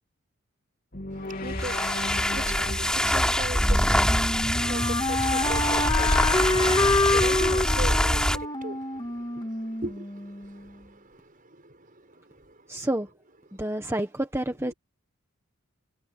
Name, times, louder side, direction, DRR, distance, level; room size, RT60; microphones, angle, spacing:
sound 1, 0.9-5.2, left 2 dB, 45° left, 3.0 m, -38 dB
voice 1, 1.1-12.9 13.6-13.8 14.6-14.7, right 2 dB, 40° right, 7.0 m, -40 dB
sound 2, 1.4-8.5, equal, 5° left, 3.8 m, -24 dB
Wind instrument woodwind instrument, 3.6-10.5, left 2 dB, 20° left, 2.3 m, -27 dB
voice 2, 12.7-13.1 13.6-14.7, right 1 dB, 10° right, 1.4 m, -28 dB
head